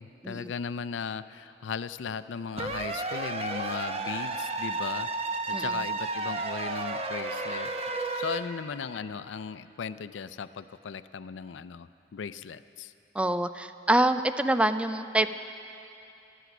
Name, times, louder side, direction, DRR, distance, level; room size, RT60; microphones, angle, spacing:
voice 1, 0.0-7.7 8.1-12.9, left 6 dB, 75° left, 14 dB, 0.4 m, -37 dB
sound 1, 2.6-8.4, right 3 dB, 35° right, 0.7 m, -32 dB
voice 2, 13.1-15.3, right 1 dB, 5° right, 11 dB, 0.3 m, -25 dB
16.0 x 12.0 x 6.0 m, 2.8 s
head